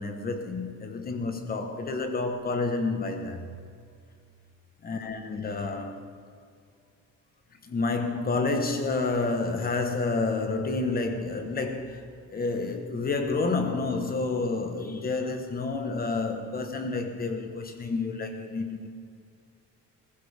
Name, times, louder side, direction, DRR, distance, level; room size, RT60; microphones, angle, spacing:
voice 1, 0.0-3.5 4.8-6.0 7.6-18.9, left 3 dB, 25° left, 6 dB, 1.2 m, -29 dB
20.5 x 15.0 x 3.5 m, 2.2 s
cardioid pair, 175°, 34 cm